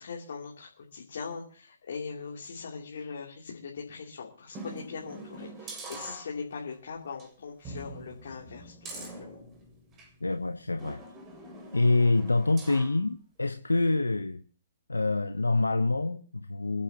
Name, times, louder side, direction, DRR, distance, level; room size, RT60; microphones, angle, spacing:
voice 1, 0.0-9.4, left 5 dB, 65° left, 3.0 m, -40 dB
sound 1, 4.5-6.7 7.1-7.3 7.6-10.1 10.8-13.0 13.4-13.5, right 2 dB, 25° right, 6.5 m, -44 dB
voice 2, 10.2-11.0 11.7-14.4 14.9-16.8, left 2 dB, 90° left, 0.9 m, -26 dB
27.5 x 11.5 x 2.9 m
figure-of-eight pair, 120°, 0 cm